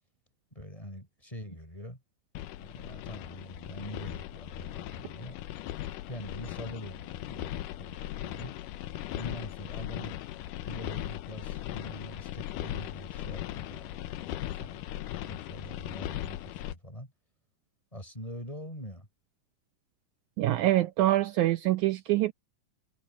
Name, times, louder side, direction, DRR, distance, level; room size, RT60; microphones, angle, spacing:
voice 1, 0.5-2.0 2.6-5.4 6.1-8.5 9.1-14.3 14.6-14.8 15.2-17.1 17.9-19.1, equal, 10° left, 6.2 m, -44 dB
sound 1, 2.4-16.7, left 13 dB, 85° left, 2.4 m, -38 dB
voice 2, 20.4-22.3, right 15 dB, 75° right, 2.0 m, -25 dB
omnidirectional pair, 3.7 m